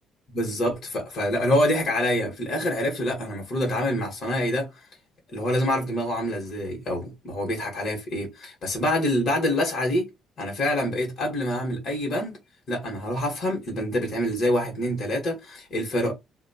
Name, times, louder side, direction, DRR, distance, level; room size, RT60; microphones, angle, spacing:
voice 1, 0.3-4.7 5.3-10.1 10.4-12.4 12.7-16.1, left 1 dB, 45° left, 1.3 m, -26 dB
2.8 x 2.2 x 2.7 m
cardioid pair, 110°, 0 cm